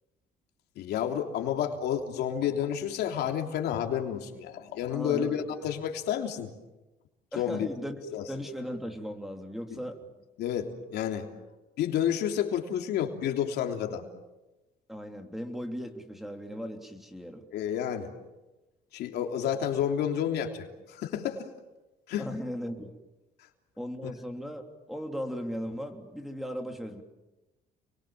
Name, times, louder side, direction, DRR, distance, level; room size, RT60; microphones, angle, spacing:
voice 1, 0.7-6.5 7.3-7.7 8.1-8.2 10.4-11.3 11.8-14.1 17.5-18.1 18.9-21.5 22.1-22.3, left 9 dB, 75° left, 3 dB, 3.3 m, -30 dB
voice 2, 4.9-5.5 7.3-8.0 8.3-10.0 14.9-17.4 19.5-19.6 22.2-23.0 23.8-24.6 24.9-27.0, equal, ahead, 4 dB, 3.3 m, -37 dB
30.0 x 22.5 x 7.5 m, 1.1 s
cardioid pair, 110°, 17 cm